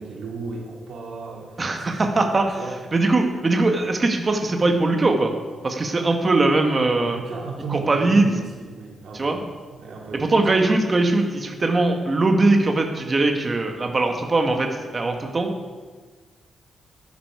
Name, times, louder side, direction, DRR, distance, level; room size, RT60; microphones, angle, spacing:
voice 1, 0.0-2.2 2.6-2.8 7.0-9.4 9.7-10.6, right 4 dB, 80° right, -2 dB, 2.4 m, -35 dB
voice 2, 1.6-2.6 2.9-5.3 5.6-7.2 7.7-8.2 9.1-9.4 10.2-15.5, right 2 dB, 25° right, 4 dB, 1.5 m, -21 dB
13.0 x 11.0 x 4.9 m, 1.4 s
wide cardioid pair, 155°, 0 cm